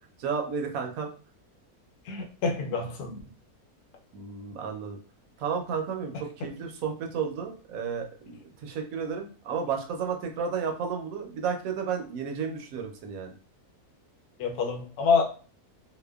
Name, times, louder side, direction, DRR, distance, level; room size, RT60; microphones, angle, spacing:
voice 1, 0.2-1.1 4.1-5.0 5.4-13.3, right 6 dB, 70° right, 0.9 m, -32 dB
voice 2, 2.0-3.2 6.4-6.5 14.4-15.2, left 5 dB, 80° left, 1.1 m, -27 dB
2.8 x 2.1 x 2.2 m
omnidirectional pair, 1.6 m